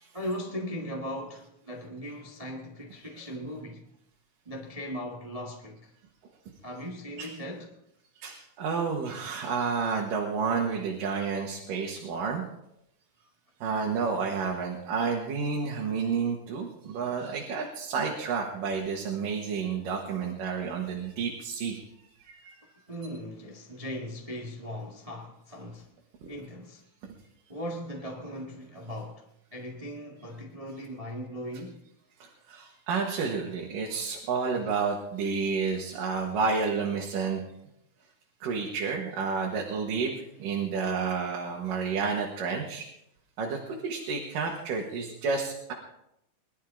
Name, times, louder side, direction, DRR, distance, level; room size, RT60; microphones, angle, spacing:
voice 1, 0.1-3.9 4.4-5.9 6.6-7.7 22.9-25.9 26.3-26.8 27.5-29.2 29.5-31.8, equal, 50° right, 0.4 m, -38 dB
voice 2, 8.2-12.4 13.6-21.8 22.2-22.6 26.2-26.3 32.2-37.4 38.4-42.9 43.4-45.7, right 5 dB, 90° right, 3.2 m, -30 dB
22.5 x 12.0 x 3.7 m
omnidirectional pair, 3.8 m